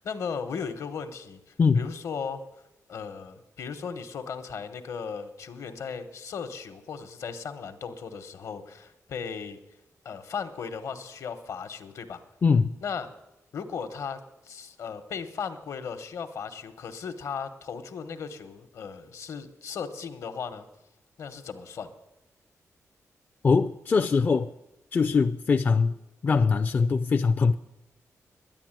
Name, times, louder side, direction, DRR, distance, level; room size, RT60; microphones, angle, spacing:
voice 1, 0.0-2.4 2.9-9.6 10.0-12.2 12.8-13.1 13.5-20.7 21.2-21.9, left 6 dB, 70° left, 1.1 m, -36 dB
voice 2, 12.4-12.7 23.4-24.5 24.9-25.9 26.2-27.5, left 5 dB, 35° left, 0.4 m, -22 dB
10.5 x 9.8 x 9.0 m
wide cardioid pair, 160°, 6 cm